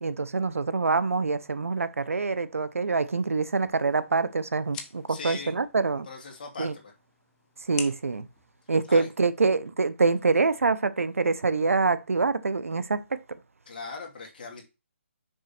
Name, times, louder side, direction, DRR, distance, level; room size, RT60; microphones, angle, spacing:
voice 1, 0.0-6.1 6.6-6.7 7.7-8.3 8.7-13.2, right 4 dB, 90° right, 0.9 m, -25 dB
sound 1, 3.5-9.5, left 8 dB, 10° left, 0.5 m, -46 dB
voice 2, 5.1-5.6 6.1-6.9 8.9-9.1 13.7-14.6, left 4 dB, 40° left, 2.3 m, -39 dB
6.4 x 5.0 x 4.3 m
hypercardioid pair, 165°, 7 cm